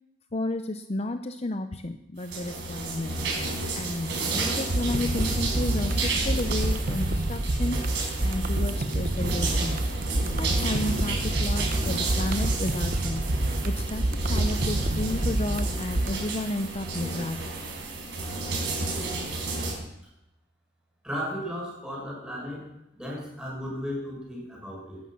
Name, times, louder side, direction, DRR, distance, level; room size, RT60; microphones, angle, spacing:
voice 1, 0.3-7.9 8.2-10.0 10.3-13.3 13.6-17.6, left 2 dB, 35° left, 9 dB, 0.6 m, -32 dB
sound 1, 2.2-19.7, right 2 dB, 70° right, 4.9 m, -31 dB
sound 2, 4.7-16.2, right 1 dB, 50° right, 0.9 m, -28 dB
voice 2, 21.0-22.7 22.9-25.0, equal, 5° right, -4 dB, 6.3 m, -35 dB
17.5 x 12.0 x 6.0 m, 0.87 s
head